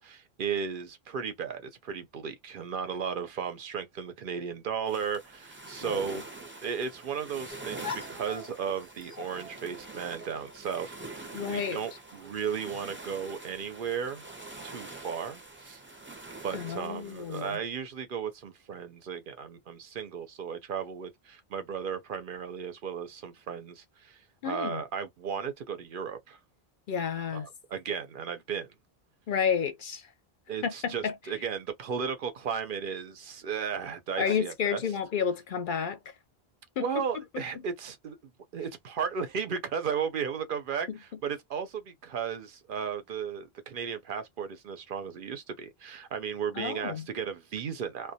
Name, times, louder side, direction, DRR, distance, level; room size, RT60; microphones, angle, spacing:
voice 1, 0.0-6.3 6.6-14.3 14.6-15.8 16.4-26.4 27.3-28.7 30.5-34.8 36.8-38.2 38.5-48.1, right 7 dB, 60° right, 0.7 m, -35 dB
sound 1, 4.9-17.6, right 2 dB, 15° right, 0.4 m, -45 dB
sound 2, 7.5-12.5, left 5 dB, 20° left, 0.7 m, -46 dB
voice 2, 11.3-11.8 16.5-17.6 24.4-24.8 26.9-27.5 29.3-30.1 30.6-31.1 34.2-36.1 36.8-37.0 37.3-37.4 40.9-41.0 46.5-47.1, left 7 dB, 60° left, 0.6 m, -31 dB
2.2 x 2.1 x 2.7 m
omnidirectional pair, 1.0 m